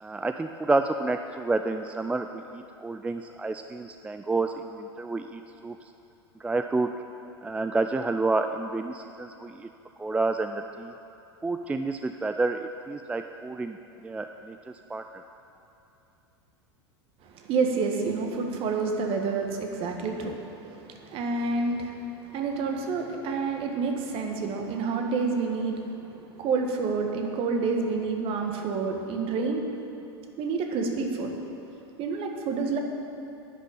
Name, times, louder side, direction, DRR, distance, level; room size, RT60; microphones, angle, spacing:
voice 1, 0.0-5.8 6.4-7.0 7.4-9.7 10.0-10.9 11.4-13.8 14.0-15.2, right 3 dB, 10° right, 7 dB, 0.3 m, -29 dB
voice 2, 17.2-29.6 30.4-31.3 32.0-32.8, right 4 dB, 40° right, 3 dB, 1.6 m, -29 dB
11.0 x 6.5 x 8.9 m, 2.9 s
figure-of-eight pair, 85°, 14 cm